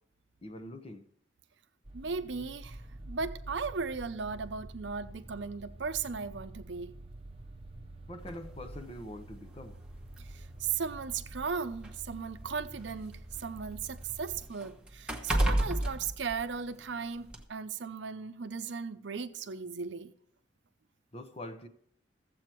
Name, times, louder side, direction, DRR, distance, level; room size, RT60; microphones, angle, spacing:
voice 1, 0.4-1.0 8.1-9.8 21.1-21.7, left 1 dB, 30° left, 0.9 m, -44 dB
sound 1, 1.8-14.4, right 1 dB, 30° right, 0.8 m, -48 dB
voice 2, 1.9-7.0 10.2-20.1, right 5 dB, 70° right, 0.6 m, -37 dB
sound 2, 8.3-8.4 9.5-9.6 10.0-10.2 11.1-13.1 13.5-16.9 17.3-17.4, right 1 dB, 5° right, 1.1 m, -32 dB
13.5 x 7.8 x 4.5 m
head